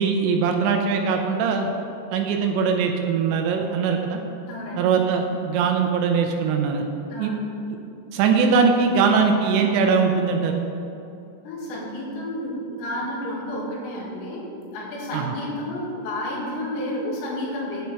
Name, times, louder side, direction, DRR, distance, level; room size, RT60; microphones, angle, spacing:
voice 1, 0.0-1.7 2.1-4.2 4.8-6.8 7.2-7.3 8.1-10.7 15.1-15.3, right 5 dB, 90° right, 3 dB, 2.5 m, -21 dB
voice 2, 4.5-4.9 7.1-7.4 11.4-17.8, left 1 dB, 85° left, -5 dB, 4.6 m, -31 dB
8.8 x 8.3 x 4.6 m, 2.6 s
omnidirectional pair, 5.9 m